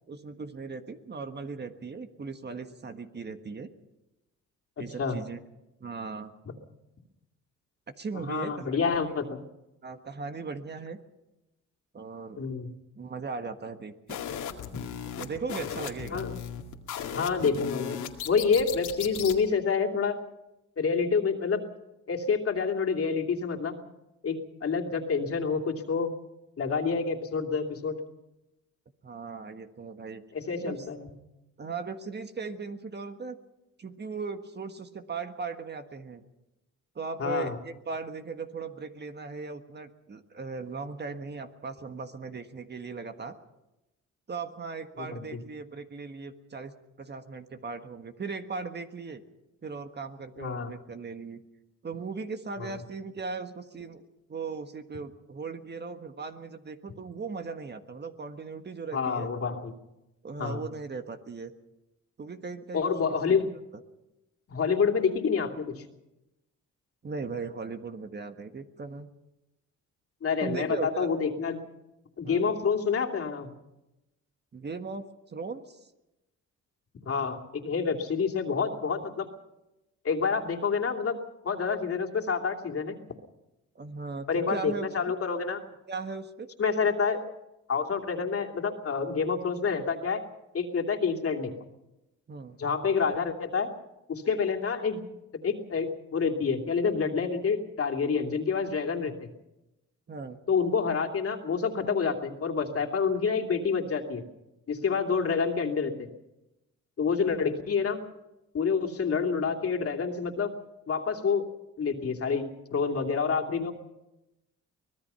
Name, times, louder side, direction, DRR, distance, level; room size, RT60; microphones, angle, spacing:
voice 1, 0.1-3.7 4.8-5.4 5.8-6.3 8.0-9.1 9.8-11.0 11.9-12.4 12.9-14.2 15.2-16.2 29.0-30.2 30.6-30.8 31.6-33.4 33.8-36.2 36.9-43.4 44.3-49.2 49.6-51.4 51.8-54.0 54.3-59.3 60.2-61.5 62.2-63.6 67.0-69.1 70.4-71.1 72.2-72.4 74.5-75.8 83.7-85.1 85.9-86.5 92.3-92.6 100.1-100.4, right 4 dB, 35° right, 7 dB, 1.5 m, -38 dB
voice 2, 8.1-9.4 12.4-12.7 16.1-16.4 17.1-18.0 18.3-20.2 20.8-21.6 22.1-23.7 24.2-26.1 26.6-28.0 30.3-31.1 37.2-37.6 45.0-45.4 50.4-50.7 52.6-52.7 58.9-59.7 60.4-60.7 62.7-63.5 64.5-65.8 70.2-71.6 72.2-73.5 77.1-79.3 80.0-81.2 81.4-83.0 84.3-85.6 86.6-87.2 87.7-90.2 90.5-91.5 92.6-93.7 94.1-95.0 95.4-99.3 100.5-104.2 104.7-106.1 107.0-108.0 108.5-110.5 110.9-111.4 111.8-112.4 112.7-113.7, left 5 dB, 50° left, 3 dB, 2.8 m, -28 dB
sound 1, 14.1-19.4, left 8 dB, 80° left, 2.3 m, -37 dB
24.5 x 19.0 x 5.7 m, 0.95 s
cardioid pair, 90°, 30 cm